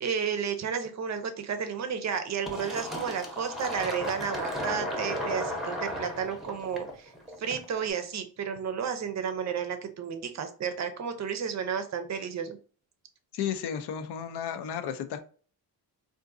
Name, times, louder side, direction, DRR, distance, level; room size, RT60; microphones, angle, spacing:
voice 1, 0.0-7.1 7.4-12.6, right 7 dB, 45° right, 8 dB, 0.5 m, -32 dB
Fill (with liquid), 2.5-7.9, left 1 dB, ahead, 0.7 m, -35 dB
voice 2, 13.3-15.2, left 8 dB, 80° left, 8 dB, 0.6 m, -33 dB
3.7 x 2.5 x 2.5 m, 0.41 s
cardioid pair, 140°, 39 cm